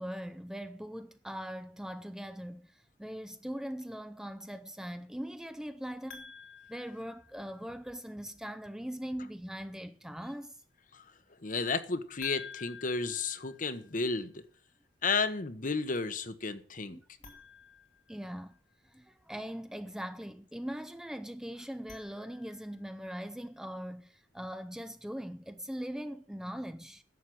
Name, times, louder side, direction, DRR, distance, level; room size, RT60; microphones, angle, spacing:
voice 1, 0.0-6.2 6.7-10.6 16.9-17.4 18.1-18.5 18.8-27.0, equal, 5° right, 0.5 m, -41 dB
sound 1, 6.1-7.8 12.2-14.2 17.1-18.7 21.6-22.9, left 6 dB, 85° left, 3.0 m, -51 dB
voice 2, 11.4-14.4 15.0-17.0, left 4 dB, 45° left, 1.0 m, -32 dB
11.0 x 7.4 x 7.7 m
head